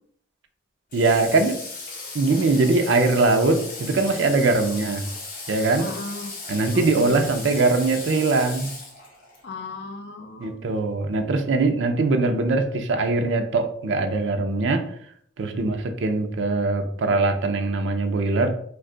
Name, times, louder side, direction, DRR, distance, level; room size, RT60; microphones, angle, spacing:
Water / Water tap faucet, 0.9-9.4, left 3 dB, 50° left, 0.9 m, -36 dB
voice 1, 0.9-1.6 2.1-5.0 5.5-5.9 6.5-8.7 10.4-14.8 15.4-18.5, right 3 dB, 90° right, 6 dB, 0.4 m, -21 dB
voice 2, 4.6-4.9 5.8-6.3 6.7-7.1 9.4-10.6 15.5-15.7, left 3 dB, 65° left, 5 dB, 0.5 m, -36 dB
2.6 x 2.3 x 3.7 m, 0.62 s
head